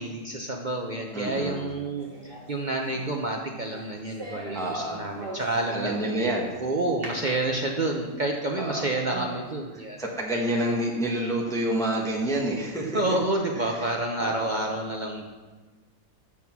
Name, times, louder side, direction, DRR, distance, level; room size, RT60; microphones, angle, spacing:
voice 1, 0.0-6.0 6.6-10.0 12.9-15.2, right 2 dB, 65° right, 0 dB, 0.4 m, -29 dB
voice 2, 1.1-1.6 4.5-5.0 5.7-6.5 8.5-8.8 10.0-13.0 13.6-13.7 14.2-14.5, right 1 dB, ahead, -1 dB, 1.0 m, -28 dB
sound 1, 2.0-6.4 7.0-8.1 8.6-8.7 9.1-9.5, right 2 dB, 35° right, 1.7 m, -41 dB
7.1 x 6.4 x 6.0 m, 1.3 s
omnidirectional pair, 1.9 m